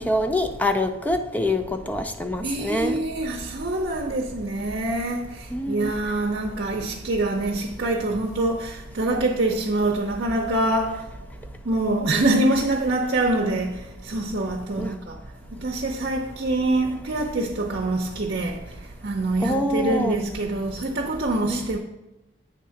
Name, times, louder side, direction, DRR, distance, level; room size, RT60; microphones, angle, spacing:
voice 1, 0.0-3.0 5.5-5.9 14.8-14.9 19.4-20.2 21.5-21.7, left 1 dB, 10° left, 0.5 m, -25 dB
voice 2, 2.4-11.0 11.6-15.2 15.6-18.6 19.0-21.8, right 2 dB, 60° right, 0.7 m, -25 dB
8.3 x 3.7 x 5.7 m
head